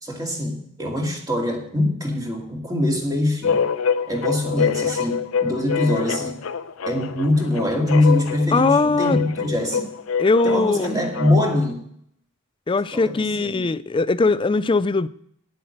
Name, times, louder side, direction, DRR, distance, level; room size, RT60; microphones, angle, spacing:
voice 1, 0.0-3.6 4.1-6.4 6.9-9.9 10.4-11.8 12.9-13.7, left 1 dB, 15° right, 2.2 m, -23 dB
sound 1, 3.4-11.7, left 6 dB, 70° left, 0.7 m, -26 dB
voice 2, 8.5-9.2 10.2-11.0 12.7-15.1, left 3 dB, 25° left, 0.4 m, -20 dB
10.5 x 7.8 x 6.4 m
head